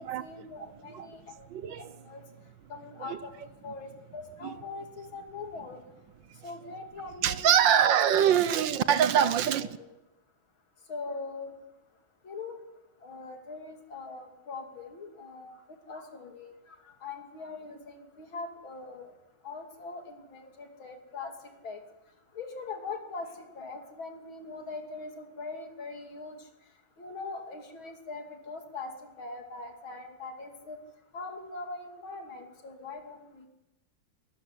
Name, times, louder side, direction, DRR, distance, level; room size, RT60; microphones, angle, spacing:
voice 1, 0.0-1.5 1.8-2.2 2.7-3.3 3.6-5.8 6.4-7.9 9.2-9.9 10.9-11.5 12.2-12.6 13.0-15.5 15.9-16.5 17.0-19.1 19.4-21.3 21.6-21.8 22.4-26.4 27.0-30.8 31.1-33.5, left 3 dB, 80° left, 4 dB, 3.6 m, -41 dB
voice 2, 1.5-1.8 3.0-3.2 4.4-4.6 7.2-9.7, right 9 dB, 70° right, 14 dB, 1.6 m, -24 dB
21.5 x 14.0 x 9.9 m, 0.99 s
omnidirectional pair, 2.1 m